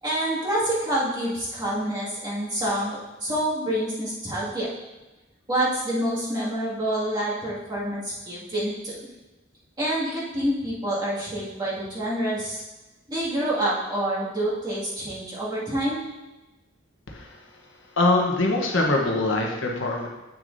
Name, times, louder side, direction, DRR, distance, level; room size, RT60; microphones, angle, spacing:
voice 1, 0.0-4.7 5.5-9.0 9.8-12.6 13.1-16.0, right 1 dB, 20° right, -8 dB, 2.1 m, -27 dB
voice 2, 18.0-20.1, left 2 dB, 75° left, 0 dB, 1.1 m, -23 dB
8.5 x 6.3 x 2.7 m, 1.1 s
head